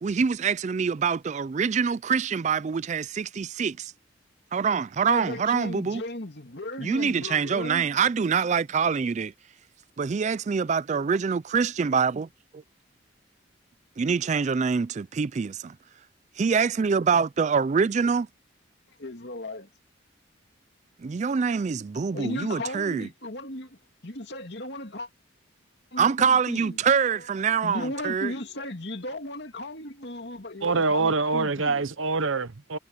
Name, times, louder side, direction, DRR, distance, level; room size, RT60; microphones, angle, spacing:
voice 1, 0.0-3.9 4.5-6.0 6.8-9.3 10.0-12.3 12.5-12.6 14.0-15.8 16.4-18.3 21.0-23.1 26.0-28.3, right 6 dB, 35° right, 0.3 m, -25 dB
voice 2, 5.1-7.9 19.0-19.7 21.9-23.8 24.0-25.1 25.9-26.8 27.6-31.9, left 1 dB, 55° left, 2.6 m, -36 dB
voice 3, 30.6-32.8, right 3 dB, 80° right, 0.9 m, -25 dB
head